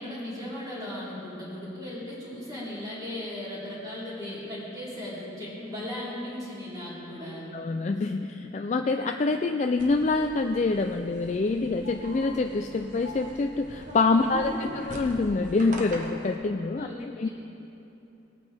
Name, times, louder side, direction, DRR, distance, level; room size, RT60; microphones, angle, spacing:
voice 1, 0.0-7.5 14.1-14.8 16.8-17.3, left 1 dB, 20° right, -8 dB, 3.3 m, -37 dB
voice 2, 7.5-17.3, left 3 dB, 35° left, 5 dB, 0.3 m, -26 dB
sound 1, 9.8-16.3, right 1 dB, 45° right, 1.2 m, -43 dB
20.0 x 9.1 x 3.5 m, 2.9 s
head